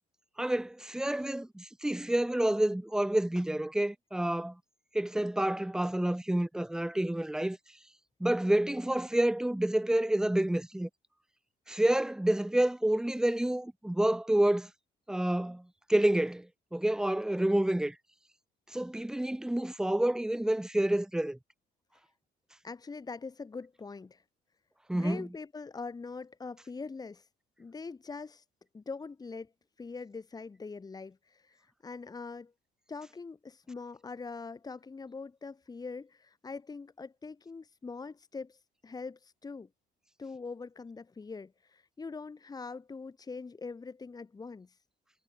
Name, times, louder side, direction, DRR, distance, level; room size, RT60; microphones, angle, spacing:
voice 1, 0.4-4.6 4.9-7.6 8.2-10.9 11.7-14.7 15.1-18.0 18.7-21.4 24.9-25.3, right 1 dB, 5° right, 0.8 m, -29 dB
voice 2, 22.6-24.2 24.9-27.3 27.6-28.4 28.7-29.5 29.8-32.5 32.9-39.7 40.2-44.8, left 4 dB, 25° left, 2.2 m, -43 dB
cardioid pair, 110°, 17 cm